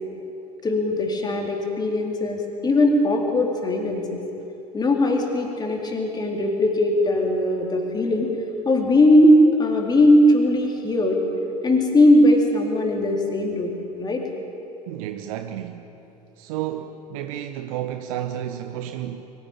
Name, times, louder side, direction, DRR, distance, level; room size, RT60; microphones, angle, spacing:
voice 1, 0.6-4.2 4.7-8.3 8.6-11.2 11.6-14.3, left 1 dB, 20° left, 1 dB, 3.9 m, -19 dB
voice 2, 14.9-15.9 16.4-19.2, right 11 dB, 55° right, 7 dB, 1.1 m, -31 dB
24.0 x 17.5 x 8.9 m, 2.8 s
figure-of-eight pair, 75°, 21 cm